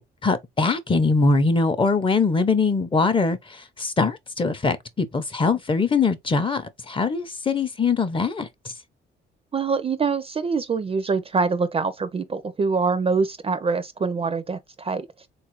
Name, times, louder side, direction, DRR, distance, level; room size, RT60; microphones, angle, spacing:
voice 1, 0.0-8.5, left 4 dB, 25° left, 0.6 m, -22 dB
voice 2, 9.5-15.1, right 4 dB, 30° right, 0.4 m, -24 dB
3.7 x 2.3 x 3.0 m
cardioid pair, 90°, 20 cm